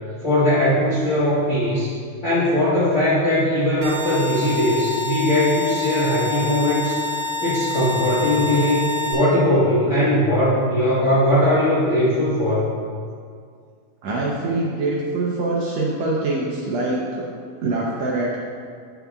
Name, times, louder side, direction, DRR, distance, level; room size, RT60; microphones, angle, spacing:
voice 1, 0.2-1.9 2.2-6.9 7.4-12.7, left 1 dB, 85° left, -10 dB, 0.6 m, -19 dB
sound 1, 3.8-9.1, left 4 dB, 50° right, 1.3 m, -27 dB
voice 2, 14.0-17.3 17.6-18.4, right 2 dB, 75° right, -3 dB, 1.6 m, -24 dB
9.4 x 7.6 x 2.3 m, 2.2 s
omnidirectional pair, 3.8 m